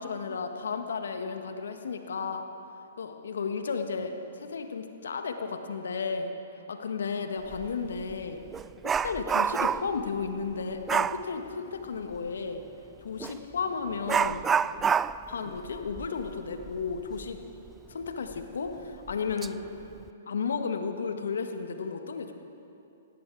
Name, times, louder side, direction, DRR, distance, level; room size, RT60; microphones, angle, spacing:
voice 1, 0.0-2.5 3.0-6.3 6.7-8.4 8.8-12.6 13.0-14.4 15.3-17.4 17.9-19.6 20.3-22.3, left 5 dB, 75° left, 6 dB, 1.5 m, -33 dB
Dog, 7.5-7.7 8.1-10.0 10.9-11.2 13.2-13.4 14.1-17.4 17.7-17.8 18.3-18.4 19.1-19.5 19.8-20.1, right 7 dB, 15° right, 0.3 m, -28 dB
18.5 x 16.5 x 4.8 m, 2.7 s
hypercardioid pair, 120°, 0 cm